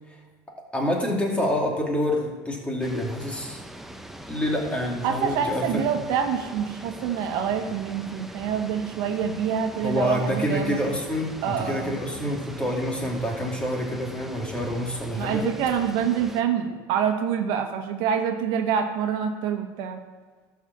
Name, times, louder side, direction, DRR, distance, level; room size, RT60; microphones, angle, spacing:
voice 1, 0.7-3.6 4.3-5.8 9.8-15.4, left 1 dB, 10° left, -1 dB, 2.4 m, -27 dB
sound 1, 2.8-16.4, right 1 dB, 5° right, 0.8 m, -42 dB
voice 2, 5.0-10.8 11.4-12.0 15.2-20.0, right 7 dB, 60° right, 5 dB, 1.2 m, -26 dB
12.0 x 4.9 x 7.3 m, 1.4 s
supercardioid pair, 130°, 9 cm